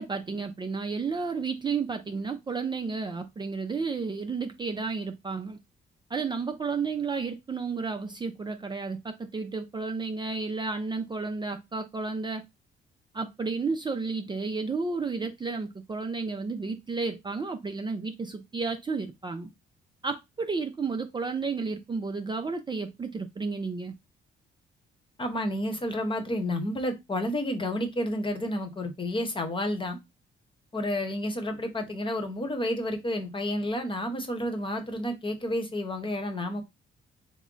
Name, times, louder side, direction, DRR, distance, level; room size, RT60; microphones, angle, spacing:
voice 1, 0.0-5.6 6.1-12.4 13.1-19.5 20.0-23.9, right 4 dB, 25° right, 0.5 m, -32 dB
voice 2, 25.2-30.0 30.7-36.6, left 1 dB, 25° left, 1.0 m, -30 dB
3.6 x 2.1 x 3.8 m
cardioid pair, 90°, 20 cm